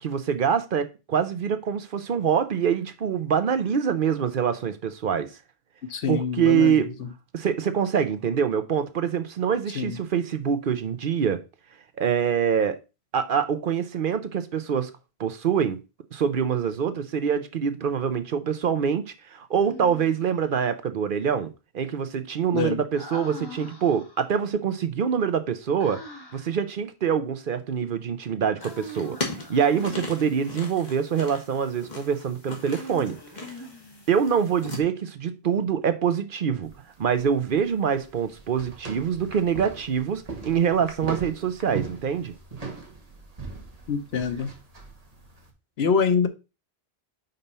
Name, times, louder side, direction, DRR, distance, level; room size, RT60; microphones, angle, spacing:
voice 1, 0.0-5.3 6.1-6.9 7.3-11.4 12.0-12.8 13.1-14.9 15.2-15.8 16.1-26.0 26.3-29.2 29.5-33.2 34.1-36.7 37.0-42.3, right 7 dB, 60° right, 0.8 m, -25 dB
voice 2, 5.9-7.1 9.8-10.0 22.5-22.8 43.9-44.5 45.8-46.3, left 5 dB, 75° left, 1.1 m, -25 dB
Human voice, 19.6-20.5 23.0-24.3 25.8-26.6 28.6-30.4 32.6-34.2, equal, 20° left, 1.5 m, -42 dB
sound 1, 28.6-34.8, left 3 dB, 45° left, 1.6 m, -38 dB
sound 2, 36.6-45.5, right 4 dB, 40° right, 1.3 m, -40 dB
5.3 x 4.2 x 5.4 m
omnidirectional pair, 1.1 m